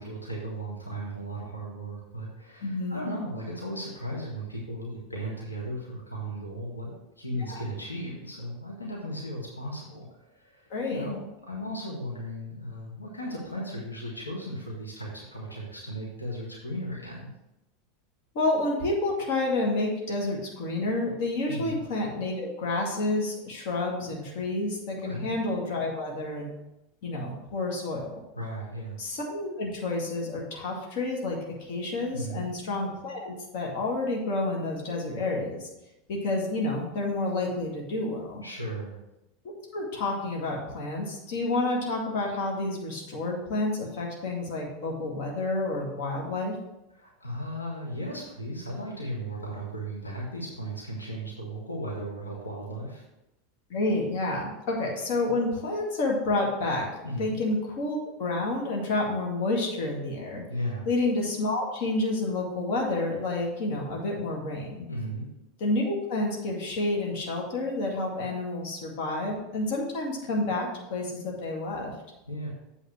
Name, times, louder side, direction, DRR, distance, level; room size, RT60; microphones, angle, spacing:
voice 1, 0.0-11.2 11.5-17.3 21.5-21.8 25.0-25.3 28.3-29.0 32.1-32.5 38.4-39.0 46.9-53.0 57.0-57.4 60.5-60.9 64.9-65.3 72.3-72.5, equal, 90° left, -3 dB, 1.7 m, -36 dB
voice 2, 2.6-3.1 7.5-7.6 10.7-11.1 18.3-26.5 27.0-28.2 29.0-35.7 36.1-38.4 39.7-46.5 53.7-56.9 57.2-60.4 60.9-64.8 65.6-71.9, left 2 dB, 55° left, -1 dB, 2.1 m, -29 dB
8.1 x 4.1 x 6.2 m, 0.91 s
figure-of-eight pair, 85°, 0 cm